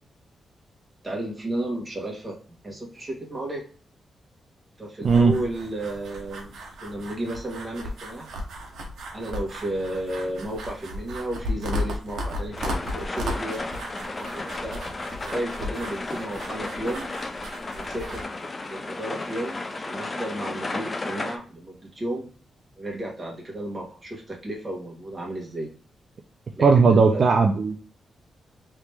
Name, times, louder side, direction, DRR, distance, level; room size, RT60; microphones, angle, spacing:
voice 1, 1.0-3.6 4.8-6.5 6.8-8.3 9.1-14.8 15.2-17.1 17.7-18.3 18.7-22.2 22.8-25.7 26.6-27.2, right 1 dB, 20° right, -1 dB, 1.3 m, -33 dB
sound 1, 5.0-18.2, left 1 dB, 85° right, 1.0 m, -35 dB
sound 2, 12.5-21.4, left 2 dB, 30° left, 0.5 m, -34 dB
voice 2, 26.6-27.8, right 4 dB, 50° right, 3 dB, 0.4 m, -17 dB
3.3 x 2.9 x 3.3 m, 0.42 s
cardioid pair, 115°, 0 cm